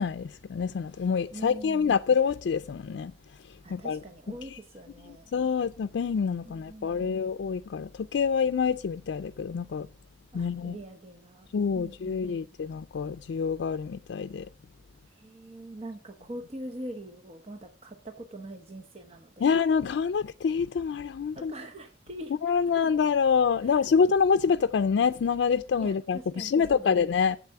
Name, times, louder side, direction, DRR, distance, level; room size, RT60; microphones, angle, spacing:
voice 1, 0.0-3.1 3.4-4.0 4.5-4.6 5.1-9.9 10.3-10.8 11.5-14.5 19.4-21.5 22.4-27.4, left 6 dB, 90° left, 0.4 m, -26 dB
voice 2, 1.3-1.9 3.6-5.3 6.4-7.3 10.3-11.5 11.7-12.5 15.1-19.6 21.3-22.3 23.6-23.7 25.8-27.0, right 1 dB, 35° right, 0.8 m, -43 dB
8.1 x 7.5 x 6.7 m
head